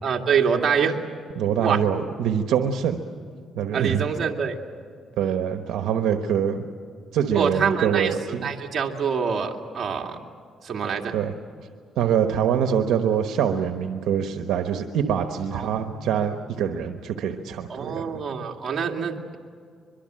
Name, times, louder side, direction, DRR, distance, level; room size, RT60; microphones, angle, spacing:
voice 1, 0.0-1.0 1.6-1.8 3.7-4.6 7.3-10.2 10.6-11.1 15.5-16.1 17.7-19.4, right 6 dB, 50° right, 1 dB, 2.4 m, -26 dB
voice 2, 1.4-3.0 3.5-4.0 5.2-6.7 7.1-8.5 11.1-11.3 12.0-18.2, right 8 dB, 80° right, 6 dB, 1.2 m, -24 dB
23.5 x 23.5 x 7.7 m, 2.2 s
cardioid pair, 90°, 0 cm